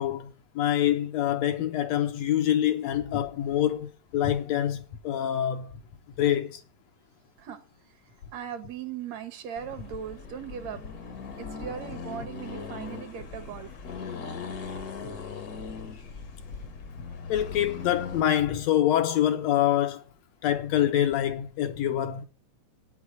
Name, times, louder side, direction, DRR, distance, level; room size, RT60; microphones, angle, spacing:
voice 1, 0.0-5.7 6.2-6.6 17.3-20.0 20.4-22.2, left 11 dB, 70° left, 1.9 m, -25 dB
voice 2, 8.3-10.8 11.4-13.7, right 8 dB, 65° right, 2.2 m, -38 dB
Accelerating revving vroom, 9.6-18.3, left 5 dB, 45° left, 1.2 m, -39 dB
9.0 x 6.4 x 8.6 m
omnidirectional pair, 3.5 m